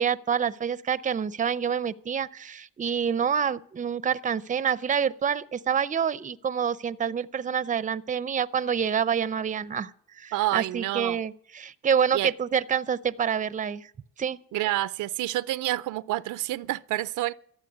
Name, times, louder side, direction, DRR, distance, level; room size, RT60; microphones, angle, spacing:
voice 1, 0.0-9.9 10.2-13.9 14.2-14.4, right 7 dB, 25° right, 0.5 m, -27 dB
voice 2, 10.3-11.2 12.1-12.3 14.5-17.3, right 16 dB, 80° right, 0.5 m, -28 dB
13.5 x 7.3 x 9.7 m
cardioid pair, 90°, 30 cm